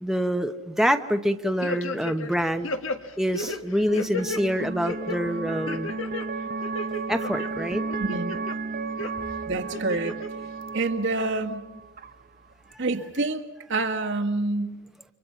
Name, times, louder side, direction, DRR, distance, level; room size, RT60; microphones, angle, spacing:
voice 1, 0.0-2.7 3.2-5.9 7.1-7.8, equal, ahead, 6 dB, 1.0 m, -26 dB
sound 1, 1.6-2.4 2.6-4.4 4.8-5.2 5.7-6.3 6.6-7.5 7.9-8.6 9.0-9.1 9.7-10.3 10.7-10.8, left 2 dB, 70° left, 1.8 m, -32 dB
sound 2, 2.6-12.7, right 4 dB, 45° right, 0.8 m, -34 dB
voice 2, 8.0-8.3 9.5-10.2 10.7-11.7 12.8-13.4 13.7-14.8, right 2 dB, 60° right, 5 dB, 1.8 m, -27 dB
30.0 x 25.0 x 5.8 m, 0.96 s
head